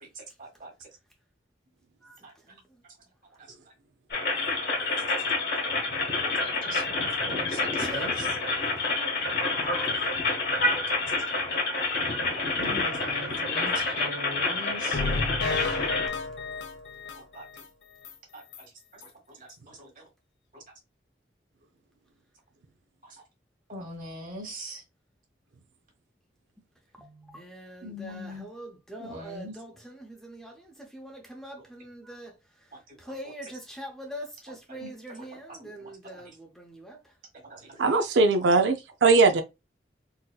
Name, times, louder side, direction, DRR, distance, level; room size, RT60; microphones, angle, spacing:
voice 1, 0.0-0.7 2.2-2.3 6.4-8.2 11.1-11.2 12.6-15.0 17.2-17.4 18.3-20.0 20.5-20.6 23.7-24.8 27.8-28.5 29.0-29.5 32.9-33.0 34.7-34.9 35.6-36.3 37.4-38.0, equal, 45° right, 1.3 m, -42 dB
voice 2, 2.0-2.7 7.8-8.1 26.9-37.1, right 1 dB, ahead, 0.6 m, -43 dB
sound 1, 4.1-16.1, left 3 dB, 60° left, 1.1 m, -28 dB
sound 2, 14.9-17.6 18.0-18.1 18.5-18.6 19.0-19.1, left 3 dB, 85° left, 0.6 m, -31 dB
voice 3, 37.8-38.7 39.0-39.4, right 3 dB, 90° right, 0.5 m, -19 dB
4.0 x 2.7 x 2.2 m
head